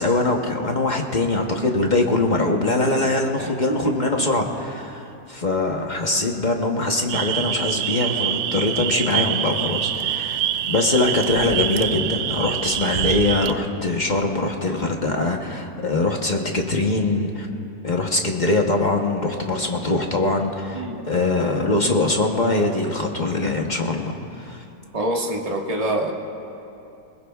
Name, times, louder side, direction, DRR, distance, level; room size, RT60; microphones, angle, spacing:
voice 1, 0.0-10.4 10.7-17.5 17.8-24.6, left 2 dB, 40° left, 2 dB, 0.7 m, -22 dB
voice 2, 3.4-4.3 20.7-21.0 24.9-26.1, right 1 dB, 25° right, -1 dB, 1.3 m, -26 dB
sound 1, 7.1-13.5, right 11 dB, 70° right, 1.1 m, -25 dB
21.0 x 20.5 x 2.3 m, 2.8 s
omnidirectional pair, 1.8 m